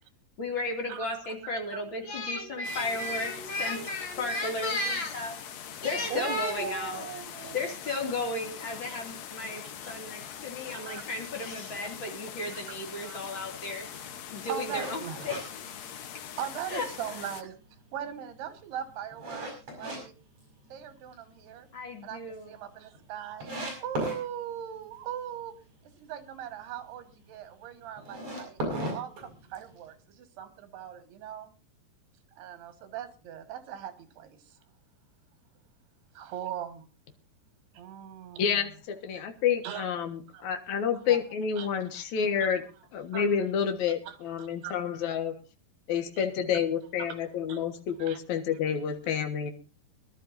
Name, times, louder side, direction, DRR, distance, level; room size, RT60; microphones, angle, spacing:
voice 1, 0.4-5.3 5.8-7.1 7.5-13.9 14.3-15.8 16.7-16.9 21.7-22.5, left 2 dB, 35° left, 1 dB, 2.7 m, -34 dB
voice 2, 0.9-1.8 6.1-7.6 8.8-8.9 9.8-9.9 10.3-10.4 10.7-11.1 11.8-11.9 12.5-13.4 13.9-14.0 14.5-15.3 15.9-16.1 16.4-17.6 17.9-19.5 19.8-20.1 20.7-21.7 22.0-25.5 26.0-31.5 32.4-34.6 36.2-36.9 37.7-38.7 39.6-39.9 40.3-40.5 41.0-41.2 41.6-41.7 42.0-42.1 42.4-42.6 43.1-43.3 44.0-44.8 47.5-47.6 48.0-48.2, right 9 dB, 80° right, 9 dB, 3.7 m, -40 dB
sound 1, 2.6-17.4, left 9 dB, 80° left, 1.5 m, -43 dB
sound 2, 14.7-16.4 16.8-16.9 17.5-20.0 20.4-21.1 21.5-21.6 22.0-22.1 22.2-22.3 22.9-23.0 23.4-24.2 28.0-29.8, right 1 dB, 40° right, 7.1 m, -36 dB
voice 3, 38.4-42.6 42.9-45.4 45.9-49.5, left 7 dB, 60° left, 6 dB, 2.3 m, -29 dB
23.5 x 12.0 x 2.6 m, 0.33 s
omnidirectional pair, 4.7 m